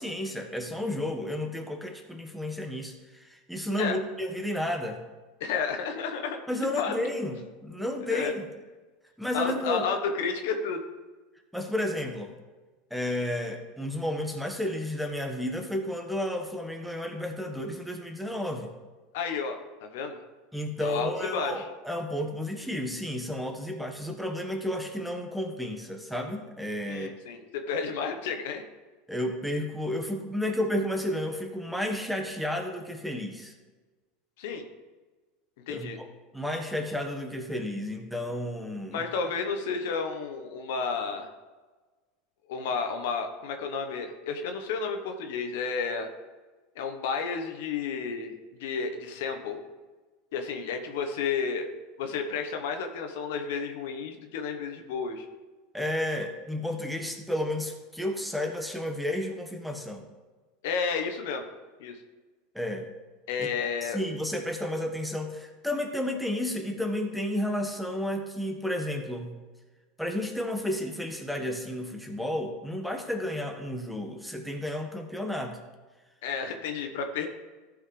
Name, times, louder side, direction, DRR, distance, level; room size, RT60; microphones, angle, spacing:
voice 1, 0.0-5.0 6.5-8.4 9.2-9.9 11.5-12.3 12.9-18.7 20.5-27.1 29.1-33.5 35.7-36.1 36.3-39.1 55.7-60.0 62.5-62.9 63.4-63.5 63.8-69.3 70.0-75.6, left 1 dB, ahead, 3 dB, 1.4 m, -32 dB
voice 2, 5.4-6.4 6.7-6.9 8.1-8.3 9.3-10.8 19.1-20.2 20.8-21.7 26.9-28.6 34.4-34.7 35.7-36.0 38.9-41.3 42.5-46.1 46.7-49.6 50.3-51.7 52.0-55.3 60.6-61.5 61.8-62.0 63.3-64.0 76.2-77.3, left 5 dB, 75° left, 5 dB, 1.1 m, -31 dB
14.0 x 5.5 x 3.3 m, 1.3 s
hypercardioid pair, 95°, 0 cm